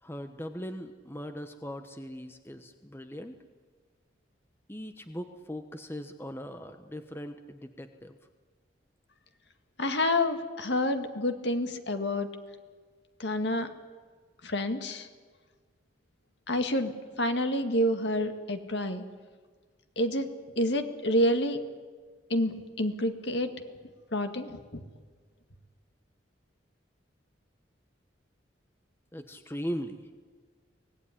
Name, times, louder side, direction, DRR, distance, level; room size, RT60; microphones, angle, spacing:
voice 1, 0.0-3.4 4.7-8.2 29.1-30.1, equal, 10° left, 7 dB, 1.0 m, -39 dB
voice 2, 9.8-12.3 13.2-13.7 14.4-15.1 16.5-19.0 20.0-20.3 20.6-21.6 22.3-23.5 24.1-24.8, left 1 dB, 65° left, 7 dB, 1.9 m, -28 dB
24.5 x 17.5 x 9.9 m, 1.5 s
head